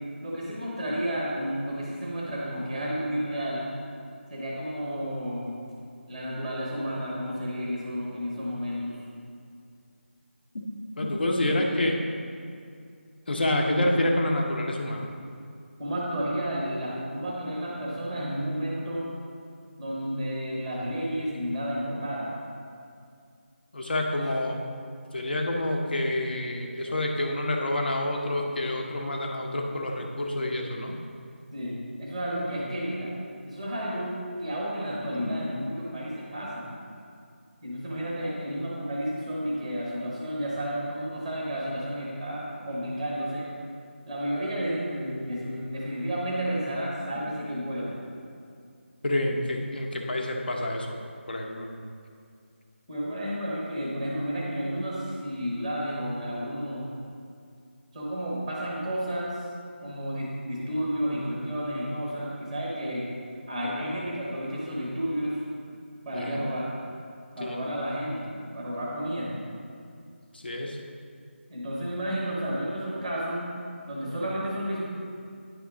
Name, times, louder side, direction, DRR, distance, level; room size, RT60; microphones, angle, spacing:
voice 1, 0.2-3.7 4.3-5.5 6.1-9.0 11.4-11.8 13.6-13.9 15.8-19.1 19.8-22.3 31.5-33.1 33.4-36.8 37.6-43.5 44.0-48.0 52.9-56.9 57.9-59.4 59.8-63.1 63.5-65.4 66.0-66.7 67.3-69.3 71.5-73.5 73.9-74.9, equal, 5° right, -5 dB, 0.8 m, -31 dB
voice 2, 11.0-12.0 13.3-15.1 23.7-24.6 25.1-31.0 35.1-35.4 49.0-51.0 51.3-51.7 66.1-66.4 67.4-67.6 70.3-70.8, left 1 dB, 50° left, 1 dB, 0.9 m, -28 dB
9.4 x 3.5 x 4.8 m, 2.3 s
figure-of-eight pair, 175°, 7 cm